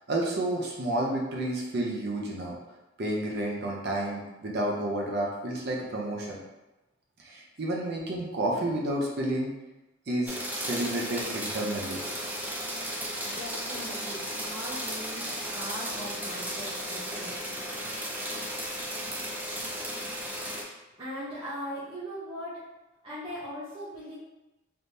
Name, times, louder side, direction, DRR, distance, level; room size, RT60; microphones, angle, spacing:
voice 1, 0.1-2.5 3.0-6.4 7.2-9.5 10.1-12.0, right 1 dB, 55° right, -2 dB, 0.6 m, -30 dB
sound 1, 10.3-20.6, equal, 10° right, 0.4 m, -35 dB
voice 2, 13.2-17.6 21.0-22.6 23.0-24.1, equal, 25° right, -12 dB, 0.9 m, -40 dB
3.4 x 3.2 x 2.7 m, 1.0 s
head